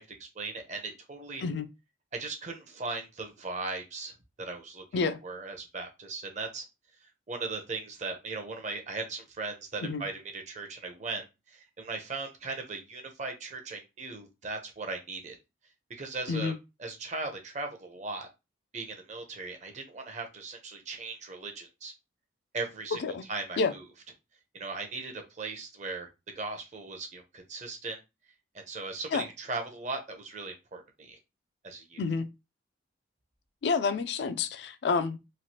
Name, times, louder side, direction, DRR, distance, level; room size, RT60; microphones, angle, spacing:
voice 1, 0.0-1.4 2.1-4.8 5.2-6.6 7.3-15.4 15.9-16.5 16.8-18.3 18.7-21.9 22.5-23.0 23.3-23.8 24.5-26.1 26.3-28.0 28.5-31.2 31.6-32.0, right 3 dB, 40° right, 0.6 m, -38 dB
voice 2, 33.6-35.2, left 4 dB, 60° left, 0.3 m, -29 dB
3.1 x 2.4 x 2.8 m
head